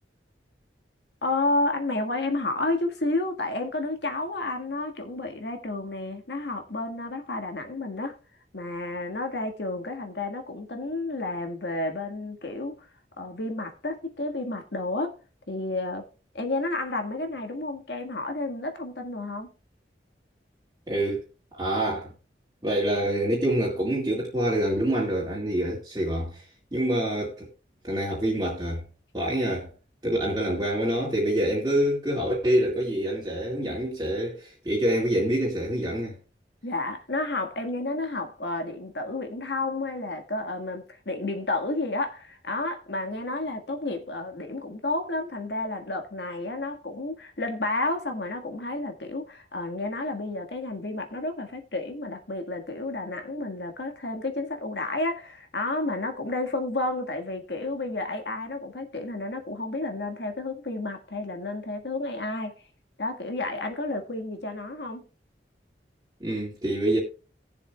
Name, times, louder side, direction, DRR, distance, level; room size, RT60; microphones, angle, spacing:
voice 1, 1.2-8.1 8.5-12.9 13.2-15.2 15.5-16.0 16.3-19.5 36.6-62.5 63.0-65.0, left 2 dB, 75° left, 1.7 m, -31 dB
voice 2, 20.9-21.2 21.5-22.1 22.6-26.4 26.7-27.5 27.8-28.8 29.1-29.7 30.0-36.2 66.2-67.0, right 1 dB, 20° right, 2.0 m, -26 dB
18.5 x 7.1 x 2.3 m
head